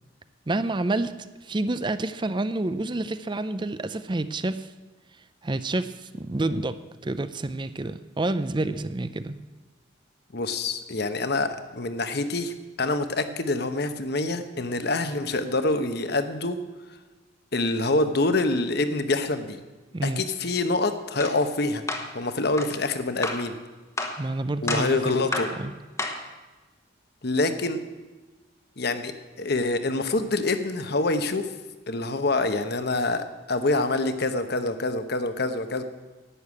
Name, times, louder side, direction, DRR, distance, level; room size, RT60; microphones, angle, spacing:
voice 1, 0.5-1.1 1.4-4.7 5.4-6.8 7.0-9.3 19.9-20.2 24.2-25.7, right 2 dB, 25° right, 13 dB, 0.5 m, -28 dB
voice 2, 10.3-16.6 17.5-19.6 20.0-21.8 22.1-23.6 24.6-25.5 27.2-27.8 28.8-29.1 29.4-31.5 31.9-35.8, left 2 dB, 55° left, 9 dB, 1.0 m, -26 dB
sound 1, 21.2-21.4 21.9-22.1 22.6-22.7 23.2-23.5 24.0-24.2 24.7-24.9 25.3-25.6 26.0-26.3, left 2 dB, 15° left, 1.1 m, -30 dB
11.0 x 9.4 x 8.4 m, 1.2 s
head